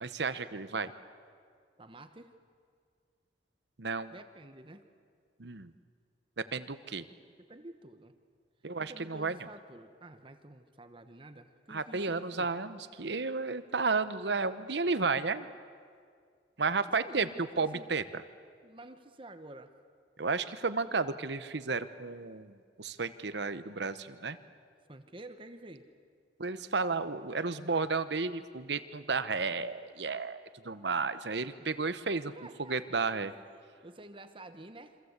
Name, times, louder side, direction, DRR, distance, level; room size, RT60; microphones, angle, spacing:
voice 1, 0.0-0.9 3.8-4.1 5.4-5.7 6.4-7.0 8.6-9.4 11.7-15.5 16.6-18.2 20.2-24.4 26.4-32.3 32.6-33.3, right 4 dB, 70° right, 13 dB, 1.0 m, -32 dB
voice 2, 1.8-2.3 4.1-4.8 7.5-8.1 8.8-12.5 17.0-17.9 18.6-19.7 24.9-25.9 31.6-31.7 32.4-35.0, right 1 dB, 30° right, 9 dB, 1.1 m, -50 dB
27.5 x 25.5 x 8.2 m, 2.1 s
head